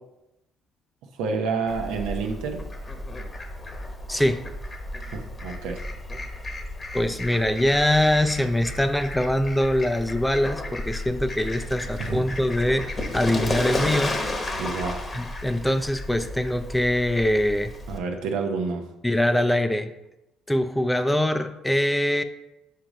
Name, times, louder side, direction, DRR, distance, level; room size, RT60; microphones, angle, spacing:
voice 1, 1.1-2.6 5.1-5.8 12.0-12.2 14.6-15.0 17.9-18.8, right 4 dB, 85° right, 4 dB, 0.8 m, -29 dB
Fowl, 1.7-18.0, left 1 dB, 30° left, 1.1 m, -33 dB
voice 2, 4.1-4.4 6.9-12.9 13.1-14.2 15.1-17.7 19.0-19.9 20.5-22.2, left 1 dB, 10° left, 9 dB, 0.5 m, -23 dB
5.0 x 4.6 x 5.2 m, 0.93 s
supercardioid pair, 80°, 0 cm